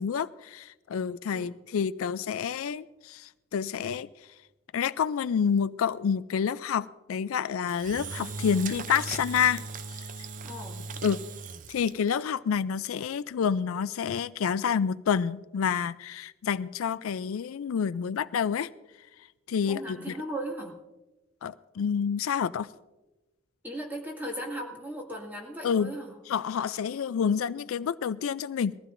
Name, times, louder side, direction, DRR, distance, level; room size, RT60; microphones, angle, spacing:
voice 1, 0.0-4.1 4.7-9.6 9.9-10.0 11.0-11.2 11.7-18.7 19.5-20.1 21.4-22.7 25.6-25.9 26.3-28.8, left 7 dB, 80° left, 16 dB, 0.4 m, -28 dB
Engine / Drill, 7.7-12.2, right 4 dB, 40° right, 0.5 m, -38 dB
voice 2, 10.4-10.8 19.7-20.7 23.6-26.2, right 1 dB, 10° right, -1 dB, 2.1 m, -37 dB
21.0 x 15.0 x 2.6 m, 1.1 s
head